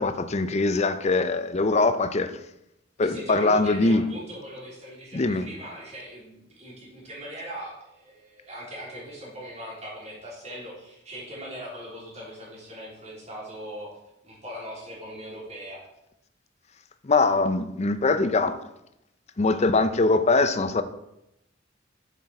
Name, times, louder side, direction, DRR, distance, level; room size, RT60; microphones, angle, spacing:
voice 1, 0.0-2.3 3.0-4.0 5.1-5.5 17.0-18.6 19.4-20.8, left 3 dB, 35° left, 0.6 m, -22 dB
voice 2, 3.0-14.0 14.2-15.8, equal, 35° right, 3.6 m, -40 dB
7.5 x 7.3 x 4.3 m
head